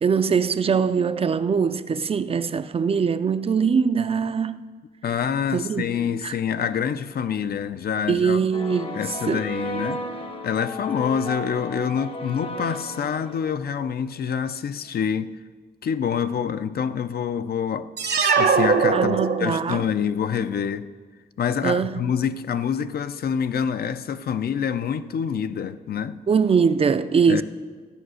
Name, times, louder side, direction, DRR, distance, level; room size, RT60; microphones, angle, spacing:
voice 1, 0.0-4.6 5.5-5.8 6.2-6.4 8.1-9.0 9.3-9.8 18.9-19.8 21.6-22.0 26.3-27.4, right 6 dB, 35° right, 0.4 m, -22 dB
voice 2, 5.0-8.4 8.9-10.1 10.4-15.4 15.8-17.9 18.2-20.9 21.4-26.2 27.3-27.4, left 7 dB, 65° left, 0.5 m, -26 dB
sound 1, 8.5-13.7, left 1 dB, 30° left, 0.7 m, -34 dB
sound 2, 18.0-19.8, right 5 dB, 75° right, 1.1 m, -21 dB
13.5 x 8.8 x 6.3 m
wide cardioid pair, 150°, 17 cm